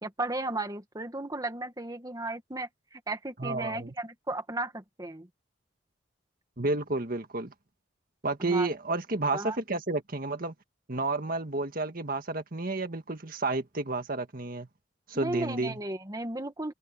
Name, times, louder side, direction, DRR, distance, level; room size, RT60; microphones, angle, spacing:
voice 1, 0.0-5.3 8.4-8.7 9.3-9.6 15.1-16.7, right 2 dB, 20° right, 1.9 m, -35 dB
voice 2, 3.4-3.9 6.6-7.5 8.2-10.5 10.9-14.7 15.1-15.8, right 2 dB, 50° right, 1.8 m, -31 dB
open air
head